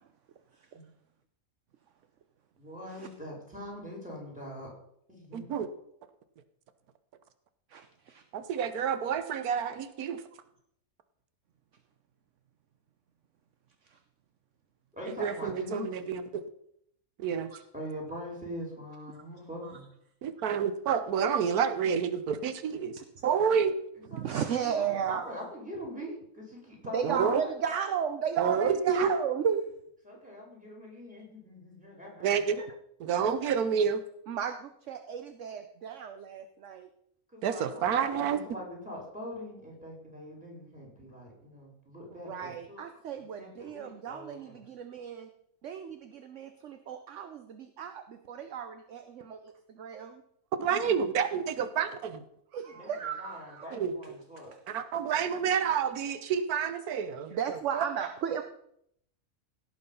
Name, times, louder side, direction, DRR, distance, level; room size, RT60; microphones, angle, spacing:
voice 1, 2.6-4.7 5.1-5.5 14.9-15.9 17.7-19.8 24.1-27.5 30.0-32.4 37.3-42.8 43.4-44.5 50.8-51.0 52.7-54.5, equal, 5° right, -2 dB, 4.6 m, -42 dB
voice 2, 5.3-5.7 8.3-10.2 15.1-16.4 17.2-17.5 20.2-23.7 27.0-27.4 28.4-29.1 32.2-32.6 33.0-34.0 37.4-38.4 50.6-52.2 53.7-53.9 54.7-57.9, right 7 dB, 90° right, 11 dB, 1.3 m, -29 dB
voice 3, 7.7-8.2 13.9-14.0 19.6-19.8 23.0-23.1 24.1-25.4 26.9-29.7 30.1-30.2 32.6-32.7 34.3-36.9 42.3-45.3 45.6-50.2 52.5-53.7 57.3-58.4, right 8 dB, 60° right, 8 dB, 1.0 m, -34 dB
17.0 x 6.8 x 5.4 m, 0.72 s
omnidirectional pair, 1.5 m